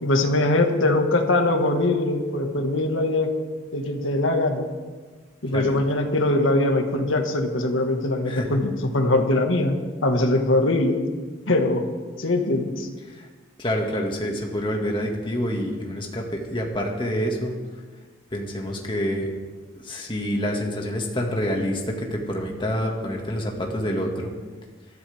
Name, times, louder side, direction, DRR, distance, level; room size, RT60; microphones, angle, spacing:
voice 1, 0.0-3.3 3.7-4.7 5.4-9.8 10.0-11.0 11.5-11.9 12.2-12.9, left 2 dB, 80° left, 4 dB, 1.8 m, -22 dB
voice 2, 8.3-8.6 13.1-13.3 13.6-17.6 18.3-19.3 19.8-24.3, equal, 25° left, 0 dB, 2.0 m, -27 dB
21.0 x 14.0 x 3.6 m, 1.4 s
head